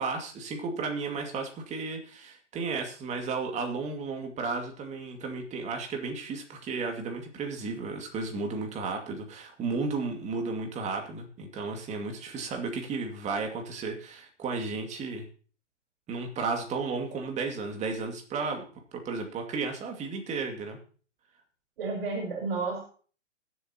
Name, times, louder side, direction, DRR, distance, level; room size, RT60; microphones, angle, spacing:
voice 1, 0.0-15.3 16.1-18.6 18.9-20.8, right 4 dB, 20° right, 3 dB, 2.3 m, -33 dB
voice 2, 21.8-22.8, right 4 dB, 50° right, 0 dB, 4.9 m, -31 dB
21.0 x 7.9 x 2.9 m, 0.42 s
hypercardioid pair, 125°, 36 cm